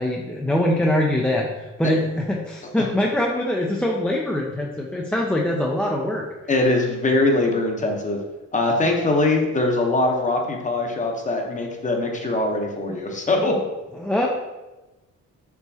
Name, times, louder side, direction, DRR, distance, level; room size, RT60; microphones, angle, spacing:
voice 1, 0.0-1.5 1.8-6.2 12.9-13.0 14.0-14.3, left 1 dB, 5° left, -2 dB, 0.3 m, -23 dB
voice 2, 6.5-8.2 8.5-13.6, left 2 dB, 25° left, 2 dB, 0.7 m, -22 dB
4.5 x 3.0 x 2.7 m, 1.1 s
cardioid pair, 90°, 30 cm